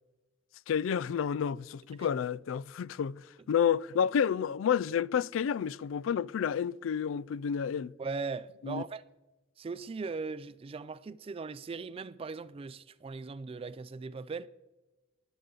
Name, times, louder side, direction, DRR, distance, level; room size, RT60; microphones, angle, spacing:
voice 1, 0.7-7.9 8.6-8.8, left 8 dB, 85° left, 0.3 m, -30 dB
voice 2, 8.0-9.0 9.6-14.5, right 4 dB, 30° right, 0.3 m, -39 dB
20.0 x 8.0 x 3.9 m
head